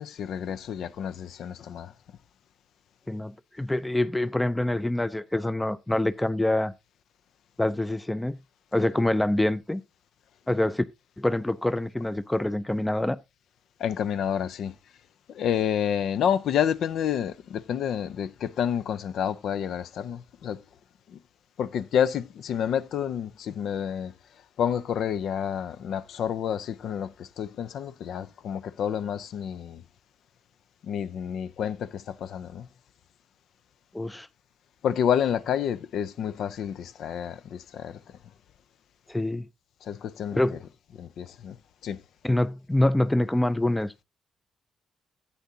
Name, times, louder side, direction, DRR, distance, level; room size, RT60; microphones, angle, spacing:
voice 1, 0.0-1.9 13.8-14.7 15.3-20.6 21.1-21.2 21.6-24.1 24.6-29.8 30.8-32.7 34.8-38.2 39.8-40.6 41.0-41.6 41.8-42.0, left 8 dB, 70° left, 0.5 m, -29 dB
voice 2, 3.1-6.7 7.6-8.4 8.7-9.8 10.5-10.8 11.2-13.2 33.9-34.3 39.1-39.5 40.3-40.5 42.2-44.0, left 1 dB, 10° left, 0.5 m, -25 dB
11.5 x 8.4 x 2.7 m
hypercardioid pair, 50°, 0 cm